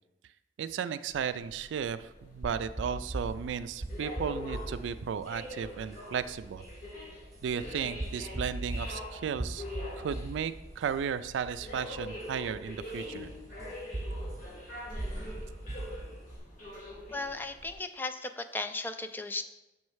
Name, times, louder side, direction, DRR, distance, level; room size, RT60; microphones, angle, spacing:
voice 1, 0.6-6.6 7.4-9.6 10.0-13.3, right 7 dB, 85° right, 13 dB, 0.3 m, -34 dB
sound 1, 1.1-17.8, left 1 dB, 50° left, 1.6 m, -44 dB
sound 2, 2.4-16.4, right 1 dB, 20° right, 0.8 m, -41 dB
voice 2, 17.1-19.4, left 2 dB, 10° left, 7 dB, 0.3 m, -36 dB
7.2 x 3.1 x 4.7 m, 0.99 s
head